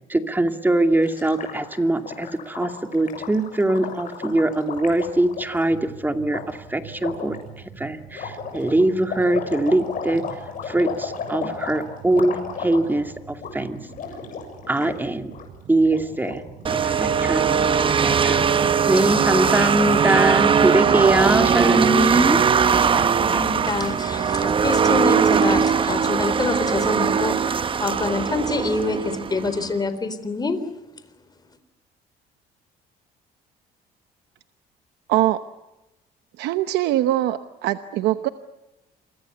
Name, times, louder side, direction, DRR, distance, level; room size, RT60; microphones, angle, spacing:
voice 1, 0.1-7.4 7.8-10.2 10.7-13.8 14.7-15.3 15.7-16.4 16.7-17.5 17.9-18.5 18.9-22.4, right 2 dB, 10° right, 6 dB, 2.4 m, -22 dB
Gurgling, 1.0-5.7 6.3-6.4 7.0-7.4 8.1-13.1 13.3-13.5 13.8-15.0 15.2-15.4 15.8-16.3 16.6-20.0, left 6 dB, 55° left, 7.4 m, -34 dB
sound 1, 4.7-21.9, right 8 dB, 65° right, 7.2 m, -45 dB
sound 2, 16.6-29.7, right 6 dB, 30° right, 0.8 m, -20 dB
voice 2, 22.9-30.6, left 4 dB, 25° left, 11 dB, 3.8 m, -27 dB
voice 3, 36.4-38.3, right 14 dB, 85° right, 10 dB, 1.0 m, -22 dB
28.5 x 24.0 x 7.0 m, 0.98 s
cardioid pair, 110°, 17 cm